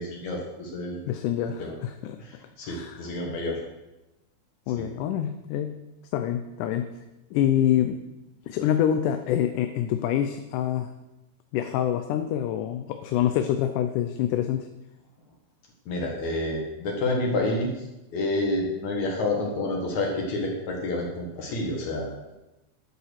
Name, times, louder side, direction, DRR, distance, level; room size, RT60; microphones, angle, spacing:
voice 1, 0.0-1.0 1.6-1.7 2.2-3.6 4.8-4.9 15.9-17.7 18.1-22.3, left 2 dB, 65° left, 0 dB, 2.8 m, -29 dB
voice 2, 1.1-2.2 2.6-3.4 4.7-5.8 6.1-6.9 7.3-8.0 8.5-10.9 11.5-14.7, left 10 dB, 85° left, 8 dB, 2.2 m, -26 dB
11.0 x 7.9 x 6.5 m, 0.99 s
omnidirectional pair, 3.5 m